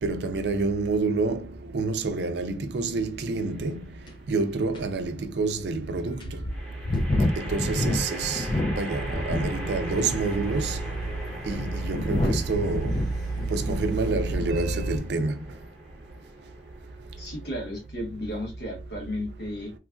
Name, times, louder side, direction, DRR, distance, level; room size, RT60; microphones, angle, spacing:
voice 1, 0.0-3.8 4.3-6.2 7.4-10.8 11.5-13.0 13.5-15.4, right 3 dB, 65° right, 0.4 m, -28 dB
sound 1, 3.4-4.0 6.5-17.8, right 1 dB, 5° left, 1.0 m, -41 dB
sound 2, 4.1-4.2 4.7-4.8 5.5-5.6 6.2-9.6 9.9-10.4 11.1-14.5 14.8-15.2, left 1 dB, 25° left, 0.3 m, -29 dB
sound 3, 8.9-15.0, right 2 dB, 20° right, 0.8 m, -32 dB
voice 2, 17.2-19.7, left 1 dB, 65° left, 1.3 m, -34 dB
3.1 x 2.4 x 2.2 m
head